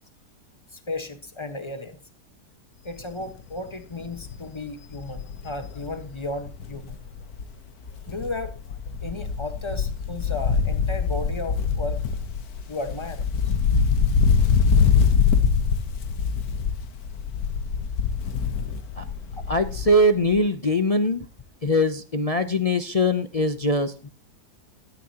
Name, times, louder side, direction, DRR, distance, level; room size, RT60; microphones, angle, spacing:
voice 1, 0.7-2.0 2.8-6.9 8.0-8.5 9.0-12.0 12.7-13.2 14.5-14.6, left 2 dB, 20° left, 8 dB, 1.3 m, -34 dB
Wind, 3.0-3.3 3.7-3.8 4.0-7.6 7.9-20.1 20.3-20.4, left 6 dB, 65° left, 1.5 m, -24 dB
voice 2, 19.5-21.2 21.6-24.1, left 1 dB, 50° left, 9 dB, 0.4 m, -22 dB
16.0 x 13.5 x 2.9 m, 0.33 s
omnidirectional pair, 1.8 m